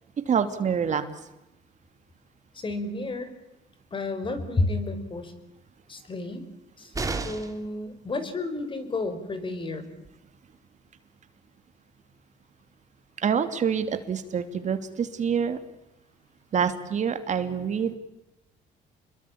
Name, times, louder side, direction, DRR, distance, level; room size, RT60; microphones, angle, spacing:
voice 1, 0.3-1.0 13.2-15.6 16.5-18.0, right 7 dB, 45° right, 9 dB, 2.9 m, -26 dB
voice 2, 2.5-3.3 3.9-5.3 5.9-6.4 6.8-6.9 7.2-9.9, left 2 dB, 30° left, 10 dB, 5.5 m, -31 dB
sound 1, 6.9-7.7 9.6-9.7 10.0-10.1, right 3 dB, 20° right, 3.4 m, -32 dB
29.0 x 22.5 x 8.8 m, 0.88 s
cardioid pair, 110°, 17 cm